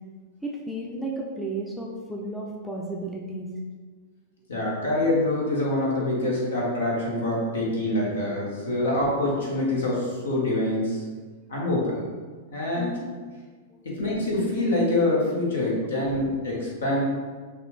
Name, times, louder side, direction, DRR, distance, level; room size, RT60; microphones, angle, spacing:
voice 1, 0.4-3.5 12.8-13.1 13.7-13.9 16.0-16.1, right 1 dB, 5° left, -2 dB, 0.6 m, -33 dB
voice 2, 4.5-11.0 11.5-12.0 12.5-12.8 13.8-17.0, left 1 dB, 70° left, -4 dB, 1.5 m, -25 dB
6.4 x 2.6 x 3.2 m, 1.5 s
figure-of-eight pair, 100°, 0 cm